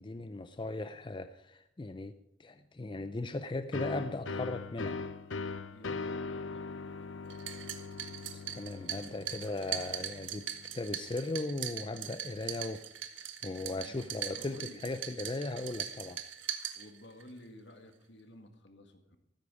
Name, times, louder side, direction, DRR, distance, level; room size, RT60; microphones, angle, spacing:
voice 1, 0.0-2.1 2.4-5.0 8.3-10.5 10.7-12.9 13.1-16.2, left 2 dB, 25° left, 10 dB, 0.5 m, -38 dB
sound 1, 3.7-11.2, left 4 dB, 90° left, 0.8 m, -41 dB
voice 2, 5.7-6.9 13.6-14.9 16.7-19.2, left 1 dB, 65° left, 6 dB, 2.0 m, -53 dB
sound 2, 7.3-17.3, right 10 dB, 85° right, 1.3 m, -41 dB
14.5 x 13.5 x 4.9 m, 0.83 s
head